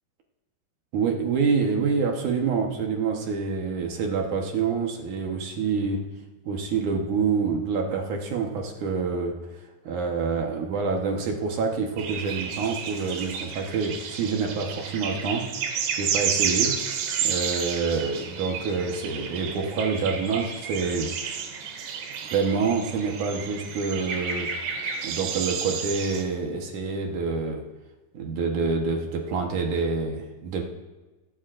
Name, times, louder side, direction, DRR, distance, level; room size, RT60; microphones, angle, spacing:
voice 1, 0.9-6.0 6.5-9.3 9.8-15.5 15.9-16.8 17.2-21.1 22.2-24.5 25.0-27.6 28.1-30.6, right 5 dB, 65° right, 1 dB, 2.1 m, -27 dB
sound 1, 12.0-26.2, right 7 dB, 90° right, 3.6 m, -31 dB
25.0 x 12.5 x 2.6 m, 1.2 s
omnidirectional pair, 4.9 m